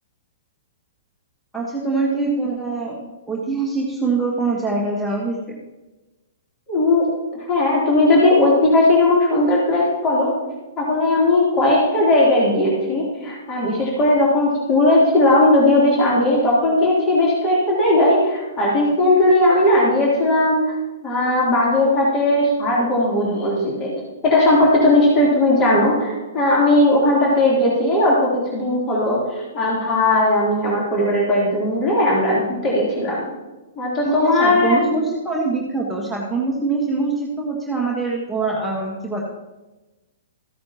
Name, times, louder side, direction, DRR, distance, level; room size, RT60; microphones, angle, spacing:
voice 1, 1.5-3.0 3.3-5.4 34.0-39.2, right 3 dB, ahead, -4 dB, 1.4 m, -23 dB
voice 2, 6.7-7.1 7.5-10.3 10.8-20.8 21.0-23.9 24.2-33.3 33.8-34.8, left 1 dB, 25° left, -5 dB, 3.5 m, -17 dB
14.5 x 9.3 x 3.0 m, 1.1 s
figure-of-eight pair, 110°, 0 cm